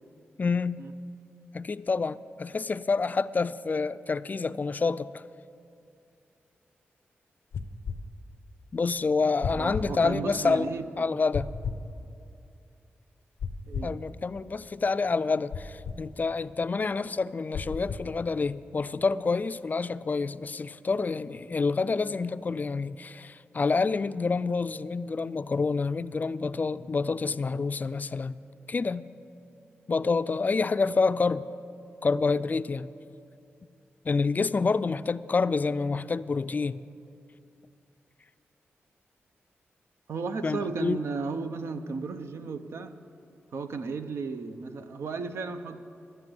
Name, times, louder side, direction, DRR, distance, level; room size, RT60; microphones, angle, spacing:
voice 1, 0.4-0.8 1.5-5.2 8.7-10.7 11.0-11.5 13.8-28.3 28.7-29.1 29.9-31.5 32.0-32.9 34.1-36.8 40.4-41.0, left 4 dB, 40° left, 15 dB, 0.3 m, -28 dB
sound 1, 7.5-8.0 9.4-9.9 11.3-11.8 13.4-14.0 15.5-16.0 17.5-18.1, left 5 dB, 90° left, 0.5 m, -33 dB
voice 2, 9.5-10.9 11.1-11.2 13.7-14.0 40.1-43.0 43.5-45.8, right 4 dB, 75° right, 9 dB, 0.6 m, -34 dB
12.0 x 7.9 x 7.6 m, 2.6 s
cardioid pair, 65°, 4 cm